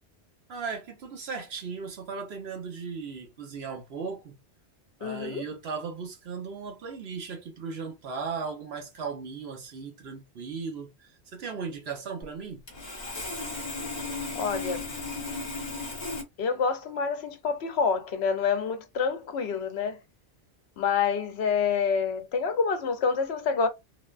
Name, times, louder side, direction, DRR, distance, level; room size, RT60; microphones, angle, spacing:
voice 1, 0.5-4.4 5.0-12.6, right 5 dB, 65° right, 1.0 m, -37 dB
voice 2, 5.0-5.5 14.3-14.9 16.4-20.0 20.8-23.7, left 5 dB, 70° left, 0.8 m, -27 dB
Sawing, 12.2-12.3 12.7-16.2, left 3 dB, 40° left, 1.2 m, -35 dB
3.2 x 2.2 x 2.3 m
omnidirectional pair, 1.2 m